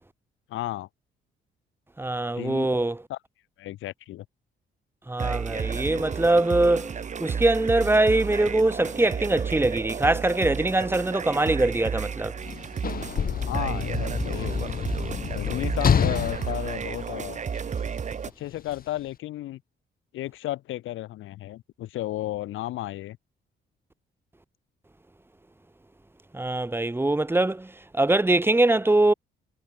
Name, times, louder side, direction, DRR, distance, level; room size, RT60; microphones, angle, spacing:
voice 1, 0.5-0.9 2.3-2.7 3.1-3.2 3.6-4.2 13.5-14.7 15.3-17.4 18.4-19.6 20.1-23.2, left 15 dB, 85° left, 1.7 m, -33 dB
voice 2, 2.0-3.0 5.1-6.9 7.2-12.3 26.3-29.1, right 2 dB, 10° right, 1.8 m, -23 dB
sound 1, 5.2-18.3, right 6 dB, 35° right, 1.0 m, -32 dB
Sliding door / Slam, 12.4-17.8 18.7-18.8, left 7 dB, 45° left, 2.1 m, -28 dB
cardioid pair, 90°, 20 cm